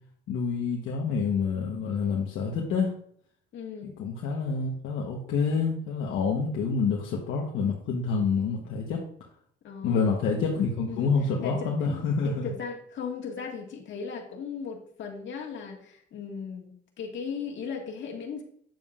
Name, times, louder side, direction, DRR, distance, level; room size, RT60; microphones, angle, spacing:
voice 1, 0.3-2.9 4.0-9.0 9.8-12.5, left 5 dB, 85° left, -1 dB, 1.1 m, -27 dB
voice 2, 3.5-3.9 9.6-10.0 10.9-18.4, left 6 dB, 70° left, 1 dB, 1.8 m, -37 dB
9.0 x 7.3 x 2.5 m, 0.63 s
cardioid pair, 90°, 20 cm